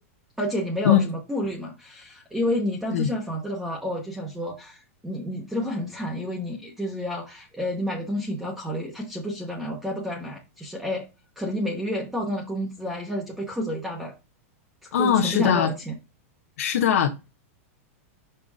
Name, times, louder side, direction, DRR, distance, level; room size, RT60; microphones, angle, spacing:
voice 1, 0.4-11.1 11.4-14.1 15.0-15.9, left 1 dB, 5° right, 0.9 m, -30 dB
voice 2, 14.9-15.7 16.6-17.1, left 9 dB, 75° left, 0.8 m, -20 dB
5.6 x 3.8 x 4.8 m
supercardioid pair, 165°, 8 cm